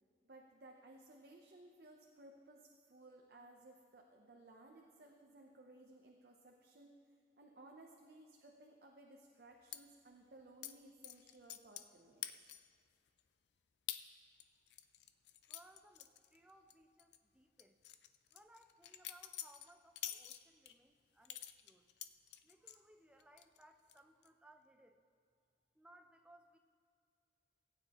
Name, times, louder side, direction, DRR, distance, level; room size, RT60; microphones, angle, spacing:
voice 1, 0.2-7.0 7.4-12.3, right 2 dB, 60° right, 1 dB, 0.7 m, -60 dB
sound 1, 9.7-9.8 10.6-10.7 11.0-11.9 12.2-12.8 13.2-13.3 13.9-14.0 14.4-16.7 17.0-17.2 17.6-20.7 21.3-22.8 23.2-23.6 23.9-24.3, left 12 dB, 75° left, 0.4 m, -47 dB
voice 2, 15.5-17.8 18.3-21.9 22.4-25.0 25.7-26.6, right 1 dB, 5° right, 5 dB, 0.5 m, -65 dB
18.0 x 8.9 x 3.0 m, 2.3 s
head